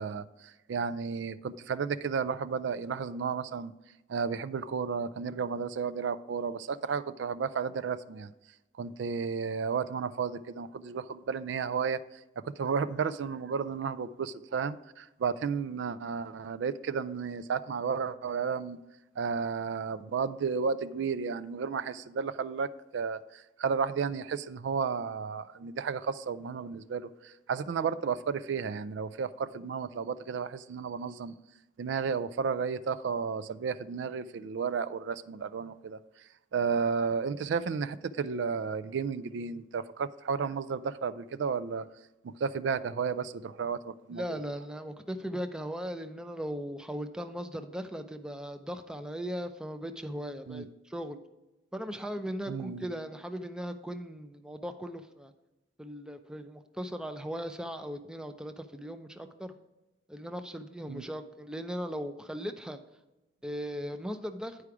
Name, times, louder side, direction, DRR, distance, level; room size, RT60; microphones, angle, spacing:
voice 1, 0.0-3.7 4.1-8.3 8.8-12.2 12.4-18.8 19.2-31.3 31.8-36.0 36.5-41.9 42.2-44.4 50.5-50.7 52.5-52.8 60.9-61.0, right 6 dB, 70° right, 14 dB, 0.3 m, -33 dB
voice 2, 44.1-51.2 51.7-55.3 55.8-59.5 60.1-62.8 63.4-64.6, equal, 5° right, 7 dB, 0.4 m, -38 dB
9.9 x 4.8 x 4.7 m, 0.99 s
head